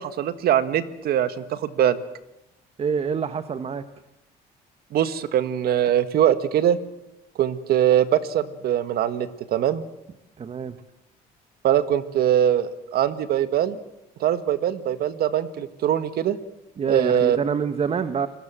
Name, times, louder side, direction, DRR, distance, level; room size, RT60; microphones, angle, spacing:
voice 1, 0.0-2.0 4.9-6.8 7.4-9.8 11.6-13.8 14.2-16.4 16.9-17.4, right 10 dB, 65° right, 12 dB, 1.7 m, -22 dB
voice 2, 2.8-3.8 10.4-10.8 16.8-18.3, right 6 dB, 35° right, 11 dB, 1.3 m, -26 dB
26.5 x 21.5 x 7.6 m, 0.88 s
cardioid pair, 110°, 17 cm